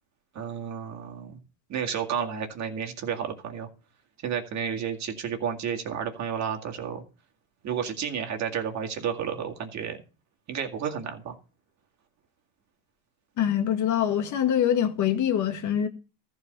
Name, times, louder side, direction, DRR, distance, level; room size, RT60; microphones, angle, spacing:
voice 1, 0.3-1.4 1.7-3.7 4.2-7.0 7.6-10.0 10.5-11.4, right 8 dB, 35° right, 2.2 m, -31 dB
voice 2, 13.4-15.9, left 9 dB, 40° left, 1.8 m, -24 dB
14.0 x 4.8 x 6.7 m
cardioid pair, 140°, 45 cm